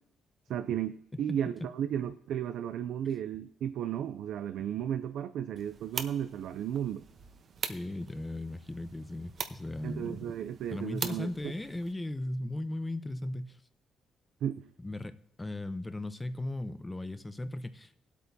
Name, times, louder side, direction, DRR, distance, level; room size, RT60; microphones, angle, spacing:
voice 1, 0.5-7.0 9.8-11.3 14.4-14.7, right 9 dB, 80° right, 11 dB, 0.4 m, -34 dB
sound 1, 5.6-11.9, right 6 dB, 50° right, 0.9 m, -43 dB
voice 2, 7.6-10.3 10.7-13.6 14.8-18.0, left 1 dB, 15° left, 11 dB, 0.7 m, -37 dB
18.5 x 8.3 x 2.7 m, 0.77 s
cardioid pair, 90°, 0 cm